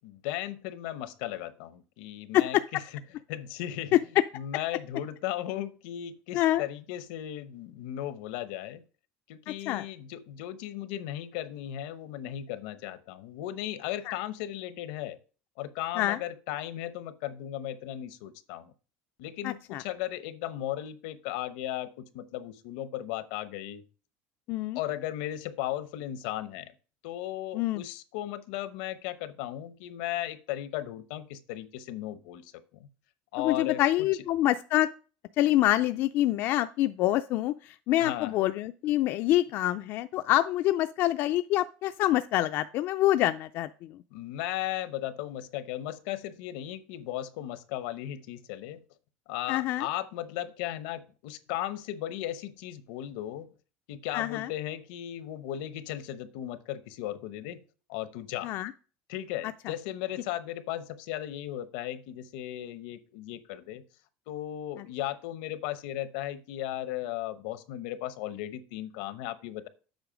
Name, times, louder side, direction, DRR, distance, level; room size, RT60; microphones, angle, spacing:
voice 1, 0.0-2.8 3.3-4.0 4.3-8.8 9.3-15.2 15.6-18.7 19.2-23.8 24.7-26.7 27.0-32.9 33.3-33.8 38.0-38.4 44.1-48.8 49.3-53.5 53.9-57.6 57.9-58.5 59.1-63.8 64.3-69.7, left 13 dB, 85° left, 13 dB, 0.9 m, -36 dB
voice 2, 9.5-9.9 14.1-14.2 16.0-16.2 19.4-19.8 24.5-24.8 27.5-27.8 33.4-34.9 35.4-43.9 49.5-49.8 54.1-54.5 58.4-58.7 64.8-64.9, left 14 dB, 55° left, 10 dB, 0.3 m, -26 dB
8.0 x 5.2 x 5.0 m, 0.36 s
cardioid pair, 140°, 5 cm